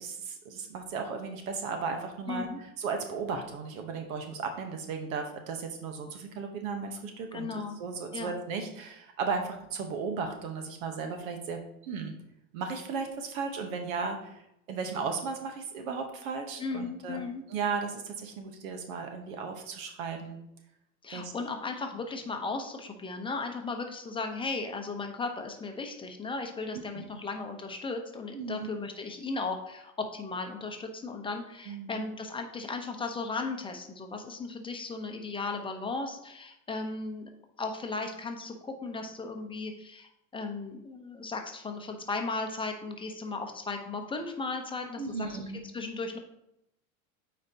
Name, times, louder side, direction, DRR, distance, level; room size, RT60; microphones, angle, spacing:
voice 1, 0.0-2.5 2.8-12.1 12.5-14.4 14.7-17.2 17.5-20.4 21.1-21.3 26.7-27.1 28.3-28.7 31.7-32.0 45.0-45.6, right 5 dB, 65° right, 5 dB, 1.1 m, -35 dB
voice 2, 2.3-2.6 7.3-7.8 8.1-8.3 16.6-17.4 21.0-37.3 37.6-45.4 45.7-46.2, left 3 dB, 10° left, 4 dB, 0.8 m, -36 dB
8.6 x 4.3 x 2.8 m, 0.81 s
hypercardioid pair, 115°, 43 cm